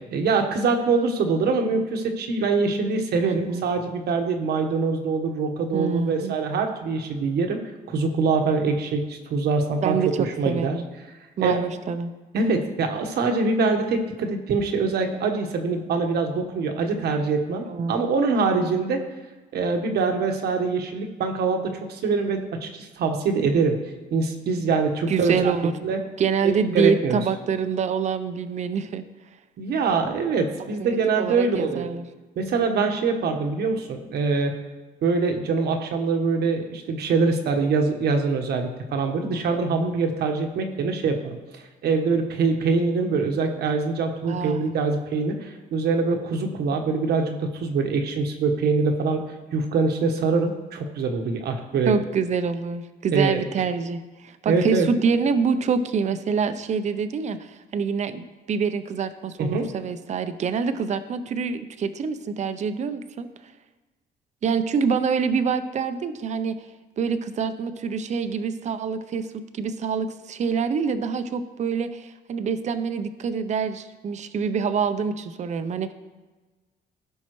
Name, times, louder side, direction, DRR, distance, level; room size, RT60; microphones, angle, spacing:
voice 1, 0.0-7.6 7.9-10.8 11.4-11.6 12.3-19.0 19.5-23.8 24.1-25.5 25.8-26.0 26.4-27.2 29.6-31.9 32.4-34.5 35.0-49.2 49.5-51.9 53.1-53.4 54.5-54.9 59.4-59.7, right 4 dB, 75° right, 4 dB, 1.3 m, -24 dB
voice 2, 3.2-3.6 5.7-6.4 9.8-10.9 11.4-12.1 17.7-18.1 25.1-25.7 26.2-29.0 30.8-32.0 44.2-44.6 51.8-63.3 64.4-66.6 67.0-75.9, right 6 dB, 45° right, 11 dB, 0.6 m, -26 dB
16.0 x 5.5 x 3.1 m, 1.2 s
cardioid pair, 115°, 17 cm